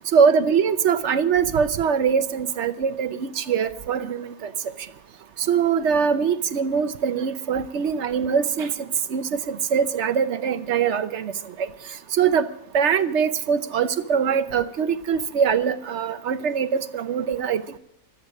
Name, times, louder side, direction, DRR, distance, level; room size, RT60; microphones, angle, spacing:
voice 1, 0.1-4.5 5.4-8.7 9.1-11.3 11.6-11.7 12.1-12.5 12.7-17.8, right 7 dB, 60° right, 12 dB, 1.1 m, -22 dB
26.0 x 8.7 x 5.1 m, 0.77 s
omnidirectional pair, 1.5 m